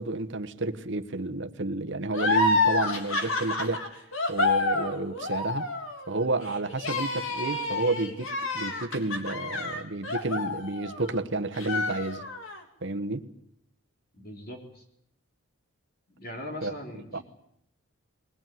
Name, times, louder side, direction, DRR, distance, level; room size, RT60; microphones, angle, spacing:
voice 1, 0.0-3.8 4.3-5.7 6.1-12.2 12.8-13.2 16.6-16.7 17.1-17.2, right 2 dB, 55° right, 1.3 m, -31 dB
sound 1, 2.1-11.2 11.6-12.6, left 2 dB, 60° left, 3.1 m, -29 dB
voice 2, 14.1-14.8 16.1-17.2, left 1 dB, 40° left, 3.9 m, -40 dB
21.5 x 19.5 x 9.3 m
head